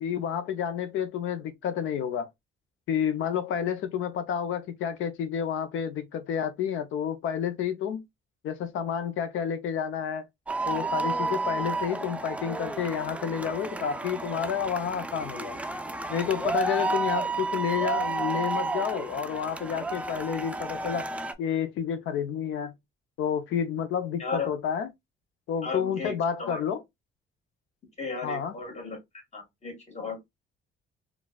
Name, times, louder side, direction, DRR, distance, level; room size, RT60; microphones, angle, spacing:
voice 1, 0.0-2.3 2.9-8.0 8.4-10.2 10.7-15.6 16.1-21.1 21.4-22.7 23.2-24.9 25.5-26.8 28.2-28.5, left 8 dB, 80° left, 0.6 m, -30 dB
sound 1, 10.5-21.3, right 3 dB, 5° right, 0.3 m, -31 dB
voice 2, 25.6-26.6 28.0-29.0 29.3-30.3, left 4 dB, 35° left, 1.7 m, -35 dB
3.9 x 2.3 x 2.2 m
cardioid pair, 90°, 20 cm